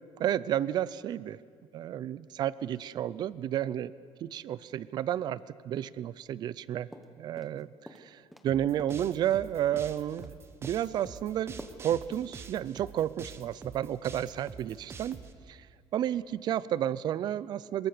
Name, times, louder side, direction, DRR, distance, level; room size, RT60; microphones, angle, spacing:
voice 1, 0.2-1.4 1.7-3.9 4.2-6.9 7.2-7.7 8.0-10.3 10.6-11.5 11.8-15.2 15.5-15.6 15.9-17.9, right 11 dB, 45° right, 19 dB, 0.5 m, -31 dB
sound 1, 6.9-7.6 7.9-8.5 8.8-10.3 10.6-11.2 11.6-11.8 12.1-12.2, equal, ahead, 1.1 m, -48 dB
sound 2, 8.5-15.3, right 5 dB, 25° right, 1.0 m, -46 dB
23.5 x 21.5 x 6.7 m, 2.2 s
cardioid pair, 165°, 10 cm